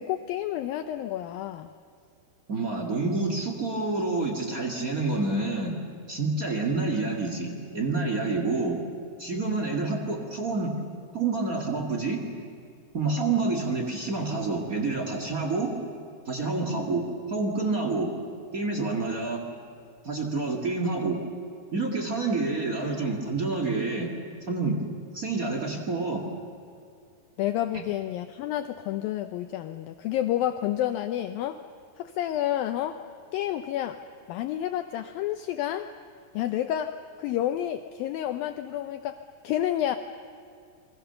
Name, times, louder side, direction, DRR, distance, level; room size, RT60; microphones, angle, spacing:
voice 1, 0.0-1.7 27.4-31.6 32.0-33.0 33.3-34.0 34.3-35.9 36.3-40.0, left 12 dB, 80° left, 9 dB, 2.1 m, -30 dB
voice 2, 2.5-5.8 6.1-8.8 9.2-10.7 11.1-12.2 12.9-15.7 16.2-18.1 18.5-19.4 20.0-21.2 21.7-24.1 24.5-24.8 25.1-26.2, right 3 dB, 40° right, 1 dB, 1.2 m, -28 dB
28.0 x 23.0 x 6.8 m, 2.4 s
omnidirectional pair, 4.9 m